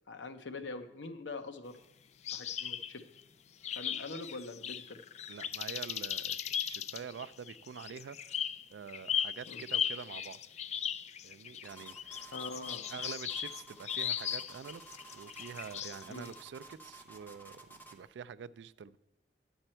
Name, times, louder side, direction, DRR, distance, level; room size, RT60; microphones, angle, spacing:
voice 1, 0.0-1.8 2.3-3.0 3.7-5.0 9.5-9.6 12.3-12.9 16.1-16.3, left 3 dB, 85° left, 0.8 m, -43 dB
sound 1, 2.2-3.2 3.6-16.3, left 9 dB, 40° left, 0.3 m, -37 dB
voice 2, 5.3-10.4 11.2-12.3 12.9-14.8 15.1-19.0, right 7 dB, 75° right, 0.3 m, -46 dB
sound 2, 11.6-18.1, right 3 dB, 10° left, 0.7 m, -53 dB
9.9 x 7.9 x 4.4 m
head